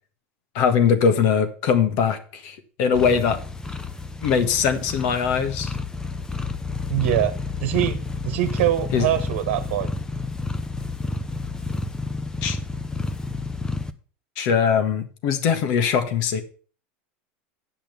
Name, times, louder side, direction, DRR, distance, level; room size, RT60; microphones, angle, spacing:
voice 1, 0.5-3.4 4.2-5.7 8.9-9.1 12.4-12.6 14.4-16.4, left 7 dB, 60° left, 8 dB, 1.6 m, -21 dB
sound 1, 2.9-13.9, left 3 dB, 10° left, 0.7 m, -30 dB
voice 2, 6.9-7.3 7.6-8.0 8.2-9.9, right 13 dB, 70° right, 8 dB, 1.2 m, -23 dB
8.9 x 5.8 x 6.8 m, 0.40 s
supercardioid pair, 120°, 6 cm